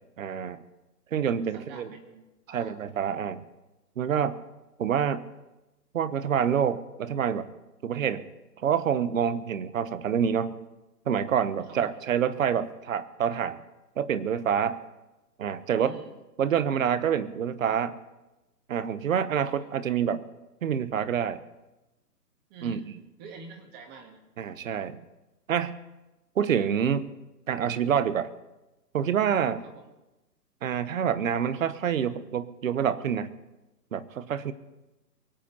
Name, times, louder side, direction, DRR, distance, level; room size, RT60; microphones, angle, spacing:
voice 1, 0.2-0.6 1.1-1.9 2.5-3.4 4.0-4.4 4.8-5.2 5.9-7.5 7.8-8.2 8.6-10.6 11.1-13.6 14.0-14.8 15.4-16.0 16.4-18.0 18.7-20.2 20.6-21.4 22.6-22.8 24.4-25.0 25.5-25.8 26.4-27.1 27.5-28.3 28.9-29.6 30.6-33.3 33.9-34.5, right 8 dB, 55° right, 15 dB, 1.1 m, -27 dB
voice 2, 1.5-2.8 11.7-12.0 15.8-16.2 19.5-19.7 22.5-24.2 29.6-29.9, right 4 dB, 20° right, 4 dB, 1.9 m, -47 dB
23.5 x 8.5 x 5.5 m, 1.0 s
figure-of-eight pair, 135°, 49 cm